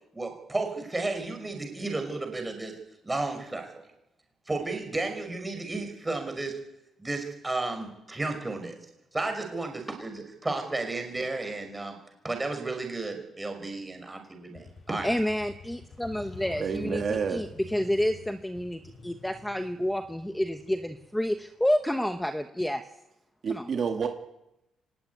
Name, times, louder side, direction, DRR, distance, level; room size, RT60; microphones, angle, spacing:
voice 1, 0.1-2.7 3.0-3.7 4.5-6.6 7.0-8.7 9.1-12.0 12.2-15.1, right 2 dB, 10° right, 5 dB, 5.5 m, -33 dB
Motorcycle, 14.5-22.2, left 4 dB, 45° left, 7.2 m, -48 dB
voice 2, 15.0-22.8 23.5-23.7, left 1 dB, 5° left, 7 dB, 1.0 m, -29 dB
voice 3, 16.6-17.4 23.4-24.1, right 6 dB, 40° right, 4 dB, 2.1 m, -29 dB
25.0 x 18.5 x 9.6 m, 0.88 s
cardioid pair, 145°, 0 cm